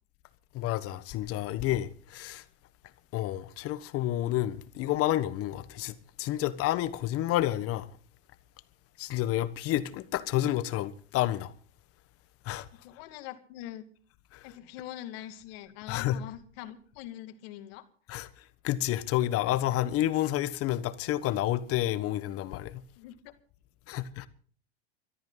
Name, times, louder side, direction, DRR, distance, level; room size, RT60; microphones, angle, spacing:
voice 1, 0.5-2.4 3.1-7.8 9.0-11.5 12.5-12.6 15.9-16.2 18.1-18.3 18.6-22.8 23.9-24.3, left 14 dB, 45° left, 1.5 m, -29 dB
voice 2, 12.8-13.9 14.4-17.9 23.0-23.3 23.9-24.1, left 13 dB, 65° left, 2.3 m, -43 dB
22.5 x 13.0 x 4.1 m
supercardioid pair, 115°, 32 cm